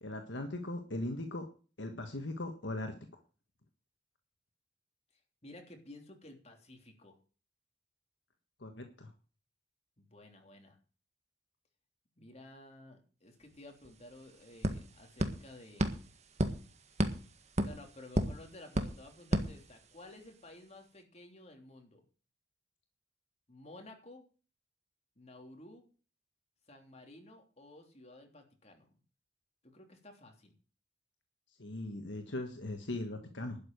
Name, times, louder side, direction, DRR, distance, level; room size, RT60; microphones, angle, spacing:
voice 1, 0.0-1.4 1.8-2.9 8.6-9.1 31.6-33.6, left 1 dB, 65° left, 5 dB, 1.6 m, -39 dB
voice 2, 5.4-7.2 10.0-10.8 12.2-15.9 16.9-17.2 17.6-22.0 23.5-24.2 25.2-25.8 26.7-28.9 29.6-30.6, left 1 dB, 35° left, 4 dB, 3.3 m, -54 dB
sound 1, 13.5-13.6 13.8-20.3, right 1 dB, 35° right, 1.6 m, -35 dB
12.0 x 6.7 x 9.4 m, 0.38 s
head